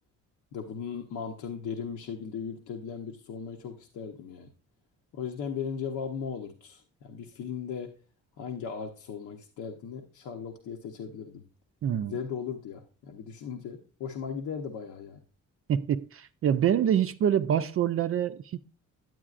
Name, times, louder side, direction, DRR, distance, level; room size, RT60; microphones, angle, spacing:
voice 1, 0.5-4.5 5.1-7.9 8.4-11.4 12.0-15.2, left 6 dB, 75° left, 0.9 m, -37 dB
voice 2, 11.8-12.1 15.7-18.6, right 9 dB, 50° right, 0.4 m, -26 dB
9.3 x 8.7 x 2.4 m
cardioid pair, 90°, 30 cm